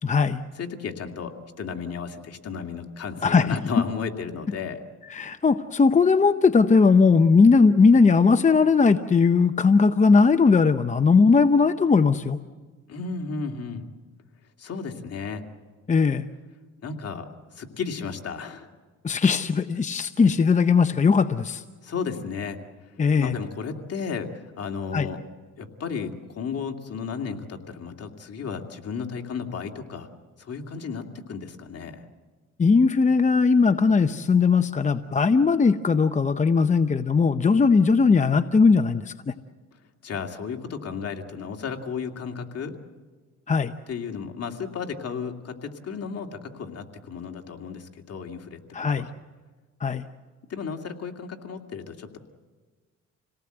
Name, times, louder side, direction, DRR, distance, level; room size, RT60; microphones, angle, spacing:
voice 1, 0.0-0.4 3.2-3.6 5.1-12.4 15.9-16.2 19.0-21.6 23.0-23.4 24.9-25.1 32.6-39.3 43.5-43.7 48.7-49.1 49.8-50.0, left 4 dB, 25° left, 10 dB, 0.7 m, -19 dB
voice 2, 0.6-4.8 12.9-13.8 14.6-15.4 16.8-17.3 17.5-18.7 21.8-22.6 23.2-25.2 25.6-30.1 30.4-32.0 40.0-42.8 43.9-48.6 48.9-49.1 50.5-52.2, left 5 dB, 55° left, 3 dB, 2.4 m, -33 dB
27.5 x 18.5 x 7.9 m, 1.4 s
cardioid pair, 90°, 30 cm